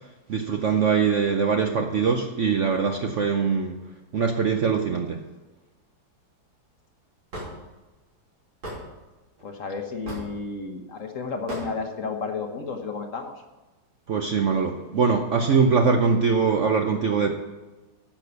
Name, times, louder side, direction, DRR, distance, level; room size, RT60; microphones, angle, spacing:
voice 1, 0.3-3.8 4.1-5.2 14.1-17.3, right 5 dB, 60° right, 4 dB, 0.8 m, -22 dB
Hammer / Wood, 7.3-7.5 8.6-8.8 10.1-10.3 11.5-11.7, equal, 90° right, 4.0 m, -33 dB
voice 2, 9.4-13.4, left 4 dB, 50° left, 5 dB, 1.2 m, -32 dB
10.0 x 6.4 x 6.8 m, 1.1 s
omnidirectional pair, 2.0 m